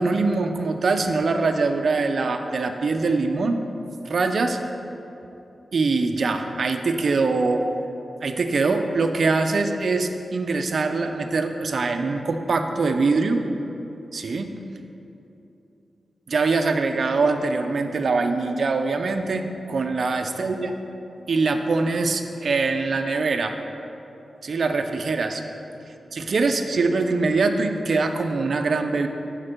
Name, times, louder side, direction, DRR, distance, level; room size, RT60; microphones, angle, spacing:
voice 1, 0.0-3.6 4.0-4.6 5.7-7.6 8.2-13.4 14.1-14.5 16.3-20.7 21.3-23.6 24.4-25.4 26.1-29.1, right 3 dB, 50° right, 6 dB, 0.5 m, -23 dB
11.5 x 4.4 x 4.4 m, 2.9 s
wide cardioid pair, 175°, 0 cm